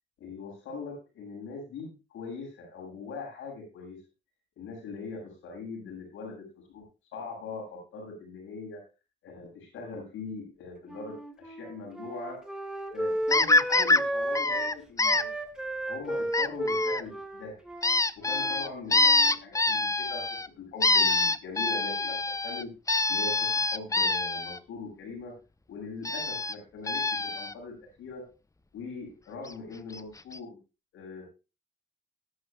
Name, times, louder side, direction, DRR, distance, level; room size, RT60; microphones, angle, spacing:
voice 1, 0.2-4.0 4.6-6.8 7.1-8.8 9.2-12.4 12.9-15.3 15.9-17.6 18.2-22.7 23.1-25.4 25.7-28.3 28.7-30.6 30.9-31.3, left 4 dB, 85° left, 2 dB, 7.4 m, -41 dB
Wind instrument woodwind instrument, 10.9-14.7 15.0-18.6 18.9-19.4, right 1 dB, 5° right, 2.6 m, -34 dB
sound 1, 13.3-14.0 14.3-15.2 16.3-17.0 17.8-20.5 20.8-24.6 26.0-26.5 26.9-27.5 29.5-29.6 29.9-30.0 30.3-30.4, left 3 dB, 15° left, 0.8 m, -25 dB
19.0 x 9.9 x 2.3 m, 0.29 s
cardioid pair, 90°, 20 cm